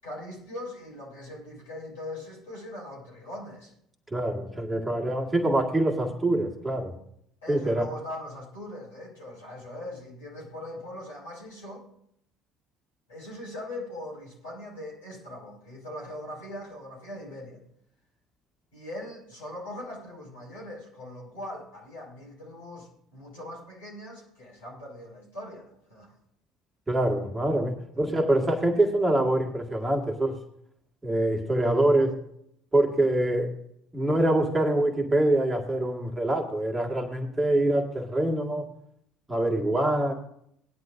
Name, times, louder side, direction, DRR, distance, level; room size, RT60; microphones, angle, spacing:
voice 1, 0.0-3.7 7.4-11.8 13.1-17.6 18.7-26.1, left 1 dB, 75° left, -3 dB, 5.6 m, -41 dB
voice 2, 4.1-6.9 7.5-7.9 26.9-30.4 31.0-32.2 32.7-33.6 33.9-38.7 39.3-40.1, right 1 dB, 15° right, 1 dB, 2.1 m, -25 dB
19.0 x 11.0 x 2.7 m, 0.72 s
figure-of-eight pair, 60°, 0 cm